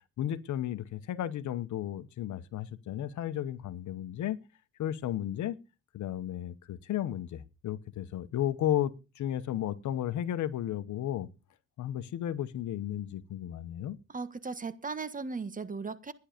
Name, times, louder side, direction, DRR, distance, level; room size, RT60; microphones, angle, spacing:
voice 1, 0.2-4.4 4.8-5.6 5.9-11.3 11.8-14.0, left 11 dB, 70° left, 1.1 m, -33 dB
voice 2, 14.1-16.1, right 4 dB, 25° right, 1.5 m, -37 dB
13.0 x 10.5 x 5.1 m
cardioid pair, 90°, 30 cm